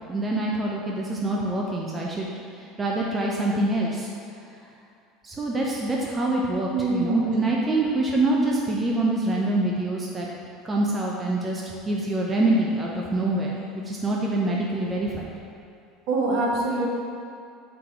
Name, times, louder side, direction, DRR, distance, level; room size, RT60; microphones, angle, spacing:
voice 1, 0.1-2.3 2.6-4.1 5.2-10.3 10.6-15.2, right 2 dB, 15° right, -3 dB, 0.8 m, -25 dB
voice 2, 6.7-7.4 16.1-16.9, right 2 dB, 65° right, -3 dB, 1.6 m, -24 dB
7.8 x 4.8 x 3.9 m, 2.5 s
supercardioid pair, 140°, 0 cm